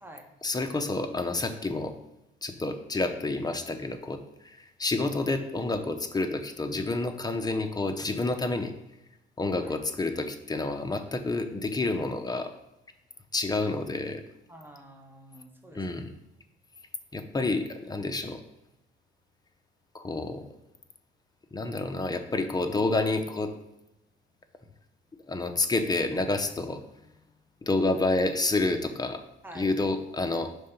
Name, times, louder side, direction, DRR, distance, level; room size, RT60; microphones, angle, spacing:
voice 1, 0.4-1.9 2.4-4.2 4.4-8.7 9.4-12.5 13.3-14.2 15.7-16.1 17.1-18.4 19.9-20.4 21.5-23.5 25.3-26.8 27.6-29.2 29.5-30.5, left 2 dB, 20° left, 7 dB, 0.7 m, -29 dB
voice 2, 14.5-16.0 29.4-29.7, right 1 dB, 10° right, 2 dB, 1.2 m, -48 dB
5.3 x 3.8 x 5.8 m, 0.88 s
cardioid pair, 90°, 20 cm